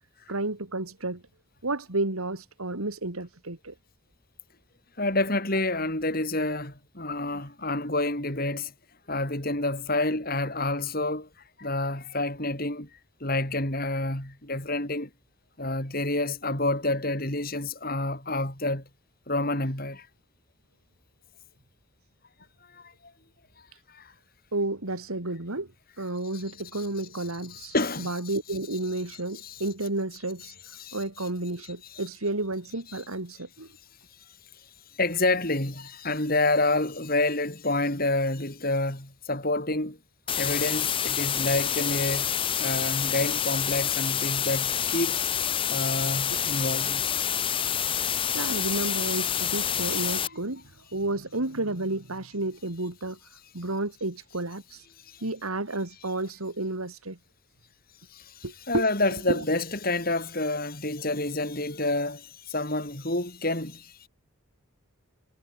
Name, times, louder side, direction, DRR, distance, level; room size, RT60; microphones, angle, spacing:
voice 1, 0.3-1.2 1.6-3.7 7.3-7.4 23.7-23.8 24.5-25.7 26.0-30.5 30.9-33.7 48.3-53.2 53.5-54.9 55.2-57.2 58.4-58.9 59.3-59.4, right 2 dB, 85° right, 2.8 m, -31 dB
voice 2, 5.0-8.7 9.1-11.3 11.6-12.9 13.2-15.1 15.6-18.9 19.3-20.1 22.7-22.9 23.9-24.1 26.7-26.8 27.5-28.2 29.4-29.6 30.8-31.0 31.9-32.0 35.0-40.0 40.4-47.3 55.0-55.2 58.1-64.1, left 2 dB, 40° left, 5.5 m, -28 dB
sound 1, 40.3-50.3, left 9 dB, 25° left, 0.6 m, -27 dB
head